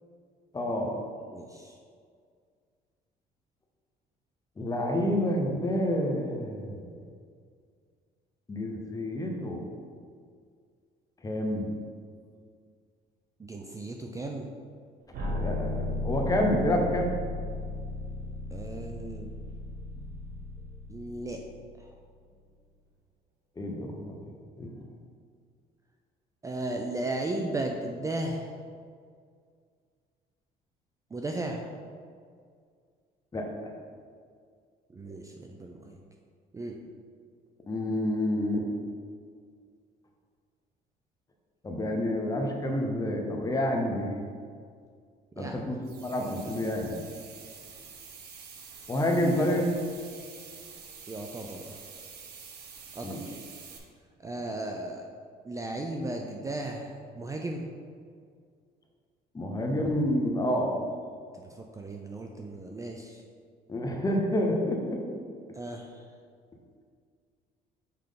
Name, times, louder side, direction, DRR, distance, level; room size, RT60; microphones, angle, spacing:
voice 1, 0.5-0.9 4.6-7.0 8.5-9.6 11.2-11.7 15.3-17.1 23.6-24.7 33.3-33.7 35.0-35.2 37.7-38.6 41.6-44.1 45.4-47.0 48.9-49.8 53.0-53.2 59.3-60.8 63.7-65.0, left 1 dB, 20° left, 1 dB, 0.9 m, -29 dB
voice 2, 1.3-1.8 13.4-14.5 18.5-19.3 20.9-21.4 21.8-21.9 26.4-28.5 31.1-31.7 34.9-36.0 36.5-36.8 45.4-45.8 51.1-51.7 52.9-53.3 54.2-55.0 55.4-57.7 61.5-63.2 65.5-66.0, right 2 dB, 20° right, 2 dB, 0.4 m, -35 dB
sound 1, 15.1-22.0, left 2 dB, 60° right, 1.2 m, -35 dB
sound 2, 45.8-53.8, right 6 dB, 75° right, 1.0 m, -47 dB
5.7 x 4.9 x 3.8 m, 2.1 s
cardioid pair, 110°, 17 cm